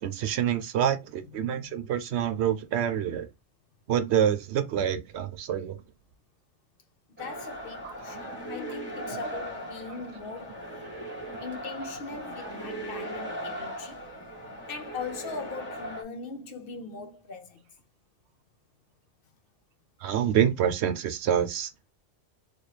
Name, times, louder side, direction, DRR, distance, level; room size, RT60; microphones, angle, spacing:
voice 1, 0.0-3.3 3.9-5.8 7.8-7.9 9.1-9.3 10.9-11.4 20.0-21.9, right 9 dB, 75° right, 0.8 m, -27 dB
voice 2, 1.3-1.9 7.2-10.7 11.4-14.0 14.7-17.6 19.2-19.4, left 4 dB, 60° left, 0.8 m, -40 dB
sound 1, 7.2-16.0, equal, 10° right, 1.0 m, -38 dB
4.1 x 2.3 x 3.2 m
omnidirectional pair, 1.1 m